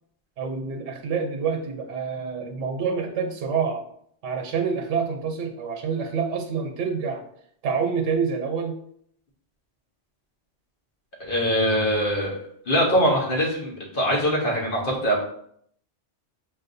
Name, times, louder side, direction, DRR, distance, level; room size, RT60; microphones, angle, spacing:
voice 1, 0.4-3.8 4.2-7.2 7.6-8.8, right 6 dB, 90° right, 3 dB, 1.0 m, -27 dB
voice 2, 11.2-12.4 12.7-15.2, equal, 50° left, -2 dB, 1.1 m, -22 dB
6.0 x 2.5 x 2.6 m, 0.66 s
omnidirectional pair, 1.2 m